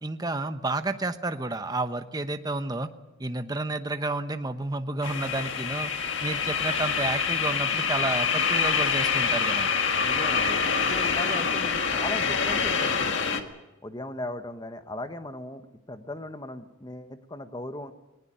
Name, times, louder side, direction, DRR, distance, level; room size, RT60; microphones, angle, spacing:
voice 1, 0.0-2.9 3.2-5.9 6.2-9.7, right 2 dB, 20° right, 9 dB, 1.0 m, -30 dB
sound 1, 5.0-13.4, left 5 dB, 65° left, 1.7 m, -26 dB
voice 2, 10.0-10.6 10.9-13.5 13.8-15.6 15.9-17.9, left 1 dB, 20° left, 9 dB, 1.2 m, -37 dB
19.5 x 19.0 x 9.3 m, 1.0 s
head